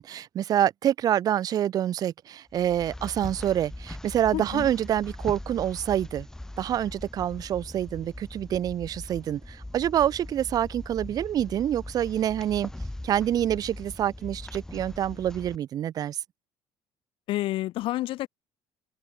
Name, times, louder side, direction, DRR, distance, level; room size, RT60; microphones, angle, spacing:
voice 1, 0.0-6.3 6.6-12.7 13.0-16.2, right 11 dB, 40° right, 0.6 m, -27 dB
sound 1, 2.5-15.6, left 1 dB, 5° left, 1.8 m, -41 dB
voice 2, 4.3-4.7 17.3-18.3, left 16 dB, 65° left, 1.6 m, -29 dB
open air
cardioid pair, 150°, 10 cm